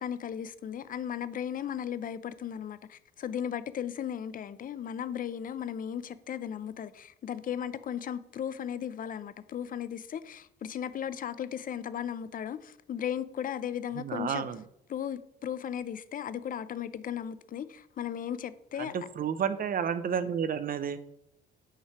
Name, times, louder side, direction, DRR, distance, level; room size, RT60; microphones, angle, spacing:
voice 1, 0.0-14.5 14.9-18.9, left 9 dB, 45° left, 0.4 m, -36 dB
voice 2, 13.9-14.6 18.8-21.0, right 7 dB, 45° right, 0.6 m, -31 dB
5.6 x 3.2 x 5.7 m
cardioid pair, 90°, 20 cm